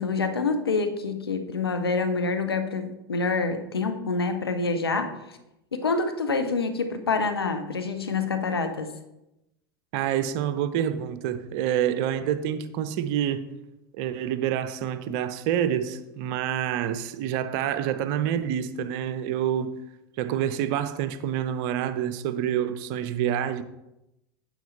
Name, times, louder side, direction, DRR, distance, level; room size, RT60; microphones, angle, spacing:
voice 1, 0.0-5.1 5.7-8.9, left 4 dB, 85° left, 1.0 m, -27 dB
voice 2, 9.9-13.5 13.9-19.7 20.2-23.6, right 10 dB, 50° right, 0.8 m, -27 dB
9.2 x 7.9 x 4.1 m
figure-of-eight pair, 85°, 12 cm